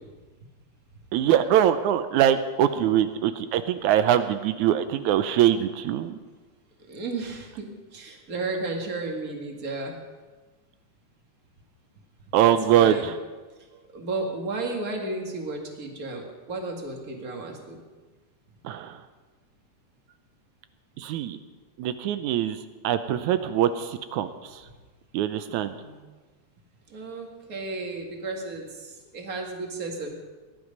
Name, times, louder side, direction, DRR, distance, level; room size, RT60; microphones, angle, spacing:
voice 1, 1.1-6.2 12.3-13.0 18.7-18.9 21.0-21.4 21.8-22.6 22.8-24.3 25.1-25.7, right 10 dB, 80° right, 11 dB, 2.0 m, -22 dB
voice 2, 6.9-10.0 12.4-13.1 13.7-17.8 25.6-26.0 26.9-30.1, right 3 dB, 30° right, 1 dB, 1.9 m, -33 dB
18.5 x 11.0 x 5.3 m, 1.3 s
omnidirectional pair, 3.6 m